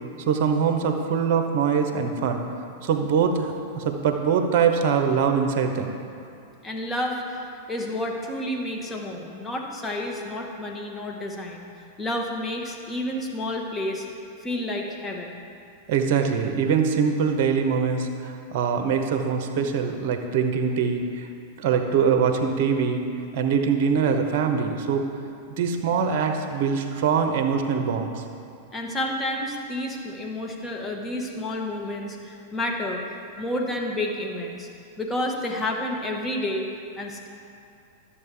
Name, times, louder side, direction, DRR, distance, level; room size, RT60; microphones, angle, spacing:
voice 1, 0.2-2.4 2.8-6.0 15.9-21.3 21.6-23.0 23.3-25.0 25.6-28.2, right 6 dB, 50° right, 5 dB, 0.8 m, -23 dB
voice 2, 6.6-11.7 12.0-14.1 14.4-15.4 28.7-33.0 33.4-34.7 35.0-36.7 37.0-37.3, left 1 dB, 15° left, 1 dB, 1.2 m, -30 dB
12.0 x 7.2 x 3.4 m, 2.5 s
figure-of-eight pair, 95°, 0 cm